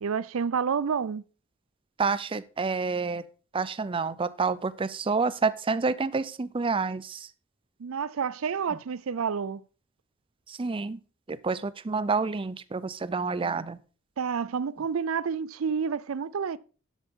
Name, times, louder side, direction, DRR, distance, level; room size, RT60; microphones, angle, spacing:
voice 1, 0.0-1.2 7.8-9.6 14.2-16.6, right 6 dB, 80° right, 0.5 m, -29 dB
voice 2, 2.0-3.2 3.5-7.3 10.5-11.0 11.3-13.8, right 4 dB, 25° right, 0.5 m, -28 dB
12.0 x 8.1 x 3.7 m
head